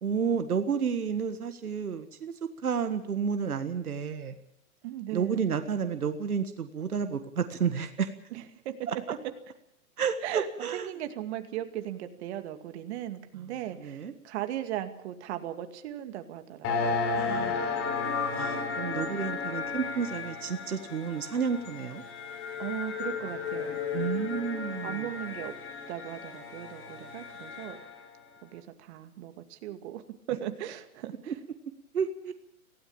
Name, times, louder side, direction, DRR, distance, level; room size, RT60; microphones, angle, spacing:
voice 1, 0.0-4.4 5.1-8.1 8.9-9.0 10.0-10.9 13.3-13.5 13.8-14.1 17.1-17.6 18.3-22.0 23.9-25.1 31.3-31.4 31.9-32.3, right 6 dB, 85° right, 9 dB, 1.7 m, -31 dB
voice 2, 4.8-5.5 8.3-8.7 10.2-17.0 22.6-23.8 24.8-25.5 25.9-27.8 28.4-30.0 30.3-31.3, right 12 dB, 50° right, 8 dB, 2.4 m, -37 dB
sound 1, 16.6-28.0, left 5 dB, 30° left, 4.5 m, -34 dB
18.0 x 17.0 x 8.8 m, 0.74 s
hypercardioid pair, 125°, 43 cm